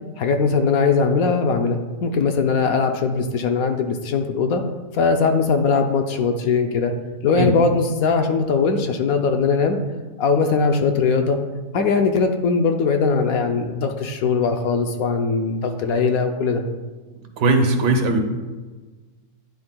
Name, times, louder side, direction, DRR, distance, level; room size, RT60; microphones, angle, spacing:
voice 1, 0.2-4.6 4.9-6.9 7.2-9.8 10.2-11.4 11.7-16.6, left 4 dB, 65° left, 5 dB, 1.0 m, -20 dB
voice 2, 17.4-18.2, right 2 dB, 80° right, 4 dB, 1.6 m, -18 dB
9.7 x 7.6 x 2.2 m, 1.3 s
omnidirectional pair, 1.8 m